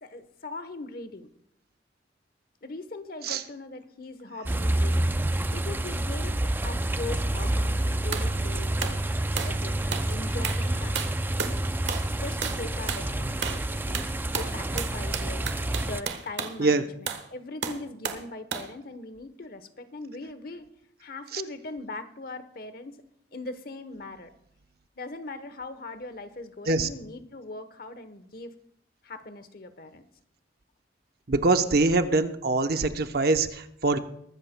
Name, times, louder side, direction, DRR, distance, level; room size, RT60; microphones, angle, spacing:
voice 1, 0.0-1.3 2.6-5.1 5.5-9.0 9.4-11.2 12.1-20.7 21.0-23.0 23.3-24.3 25.0-28.5 29.0-30.0, left 2 dB, 55° left, 11 dB, 1.0 m, -40 dB
sound 1, 4.5-16.0, right 1 dB, 10° right, 0.3 m, -28 dB
Yell, 6.7-16.4, left 4 dB, 70° left, 2.3 m, -51 dB
sound 2, 8.1-8.3 8.8-9.0 9.4-9.6 9.9-10.1 10.4-10.7 11.0-11.6 11.9-12.1 12.4-12.6 12.9-13.1 13.4-13.7 13.9-16.6 17.1-17.3 17.6-18.3 18.5-18.7, right 6 dB, 75° right, 1.3 m, -33 dB
voice 2, 31.3-34.0, right 3 dB, 55° right, 8 dB, 0.8 m, -24 dB
22.0 x 13.5 x 2.2 m, 0.72 s
head